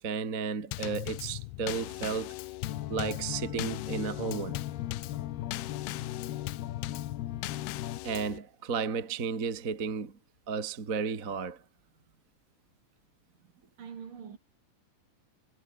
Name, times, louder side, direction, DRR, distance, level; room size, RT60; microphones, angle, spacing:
voice 1, 0.0-2.3 2.9-4.6 8.0-10.1 10.5-11.6, right 5 dB, 30° right, 1.5 m, -33 dB
Drum kit / Snare drum / Bass drum, 0.7-8.4, left 20 dB, 85° left, 2.4 m, -40 dB
sound 1, 2.6-8.0, left 13 dB, 65° left, 3.1 m, -38 dB
voice 2, 13.8-14.4, right 7 dB, 50° right, 4.3 m, -44 dB
omnidirectional pair, 5.2 m